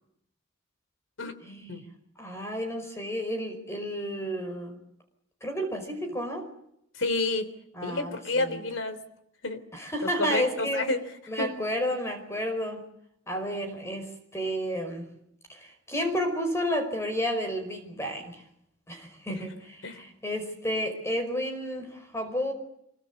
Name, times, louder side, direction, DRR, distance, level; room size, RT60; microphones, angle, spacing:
voice 1, 1.4-1.8 2.2-4.8 5.4-6.5 7.7-8.6 9.7-10.8 11.3-12.8 13.3-15.0 15.5-18.4 18.9-22.5, equal, 15° left, 5 dB, 5.0 m, -31 dB
voice 2, 7.0-7.5 7.8-9.0 9.4-9.6 10.2-11.0 11.4-11.5 19.8-20.0, left 2 dB, 75° left, 11 dB, 3.4 m, -29 dB
25.5 x 22.5 x 8.3 m, 0.76 s
head